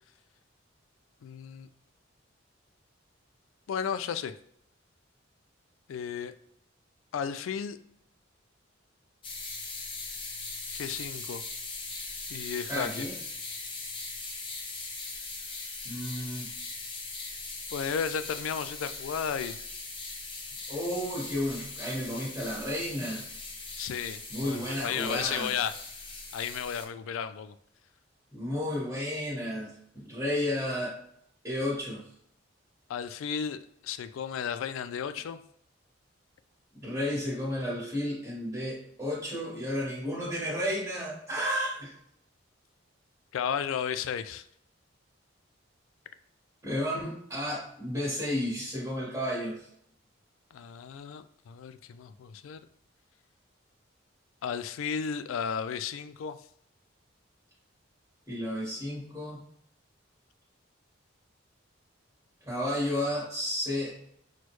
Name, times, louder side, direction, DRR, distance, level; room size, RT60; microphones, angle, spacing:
voice 1, 1.2-1.7 3.7-4.3 5.9-6.3 7.1-7.8 10.7-11.4 12.3-13.0 17.7-19.6 23.8-25.7 26.3-27.6 32.9-35.4 43.3-44.4 50.5-52.7 54.4-56.4, left 7 dB, 85° left, 12 dB, 0.3 m, -34 dB
sound 1, 9.2-26.9, left 3 dB, 25° left, 0.6 m, -40 dB
voice 2, 12.7-13.1 15.8-16.5 20.7-23.2 24.3-25.5 28.3-30.9 31.4-32.0 36.7-41.9 46.6-49.7 58.3-59.4 62.4-64.0, left 1 dB, 15° right, -7 dB, 1.5 m, -32 dB
6.1 x 2.2 x 3.1 m, 0.69 s
head